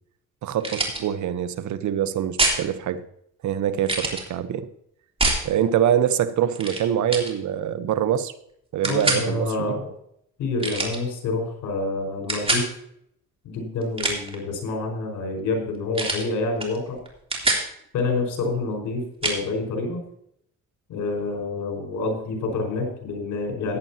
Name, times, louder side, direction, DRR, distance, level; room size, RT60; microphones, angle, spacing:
voice 1, 0.4-3.0 3.4-4.7 5.4-8.3 8.7-9.8, right 10 dB, 70° right, 1.0 m, -24 dB
sound 1, 0.6-1.0 2.4-2.6 3.8-4.2 5.2-5.4 6.5-6.8 7.1-7.3 8.8-9.2 10.6-11.0 12.3-12.7 13.8-14.3 15.9-16.3 16.6-16.8 17.0-17.7 19.2-19.4, right 2 dB, 20° right, 3.3 m, -24 dB
voice 2, 8.8-9.9 10.4-12.7 13.4-17.0 17.9-20.0 20.9-23.8, left 3 dB, 85° left, 4.9 m, -27 dB
15.5 x 10.5 x 2.8 m
cardioid pair, 90°, 30 cm